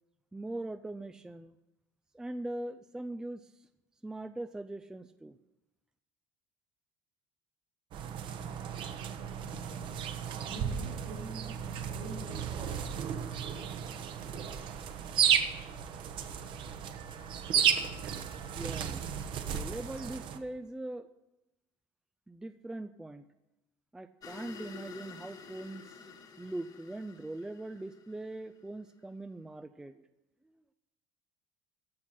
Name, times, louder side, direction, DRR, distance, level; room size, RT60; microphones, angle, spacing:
voice 1, 0.3-1.6 2.1-3.5 4.0-5.3 18.6-19.1 19.5-21.1 22.3-23.2 23.9-26.1 26.4-30.0, right 2 dB, 5° right, 11 dB, 0.4 m, -41 dB
sound 1, 7.9-20.4, right 8 dB, 50° right, 1.1 m, -34 dB
voice 2, 9.4-10.0 10.4-12.9 13.2-14.7, right 1 dB, 70° right, 0 dB, 6.4 m, -47 dB
sound 2, 24.2-28.8, left 6 dB, 35° left, 1.4 m, -50 dB
14.0 x 5.9 x 9.9 m, 0.94 s
cardioid pair, 145°, 11 cm